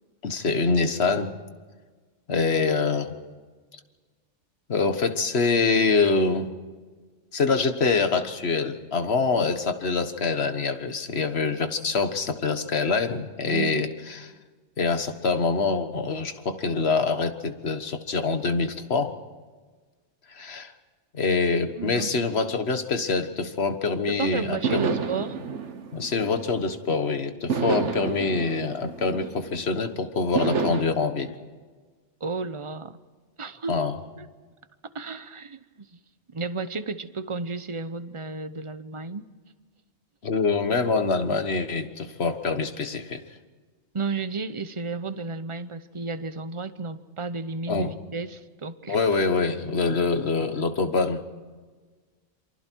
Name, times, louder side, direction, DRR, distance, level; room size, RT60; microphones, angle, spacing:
voice 1, 0.2-1.3 2.3-3.1 4.7-6.5 7.3-14.3 14.8-19.1 20.3-20.7 21.1-24.9 25.9-31.3 33.7-34.0 40.2-43.2 47.7-47.9 48.9-51.2, left 4 dB, 60° left, 8 dB, 1.6 m, -25 dB
voice 2, 13.5-13.9 21.7-22.3 24.2-25.4 32.2-33.0 33.4-33.7 34.2-34.3 34.9-36.0 36.3-39.3 43.9-49.0, right 4 dB, 30° right, 12 dB, 0.8 m, -33 dB
sound 1, 24.6-26.9 27.5-29.7 30.3-30.8, right 5 dB, 75° right, 1.5 m, -29 dB
28.0 x 24.5 x 4.6 m, 1.4 s
omnidirectional pair, 1.2 m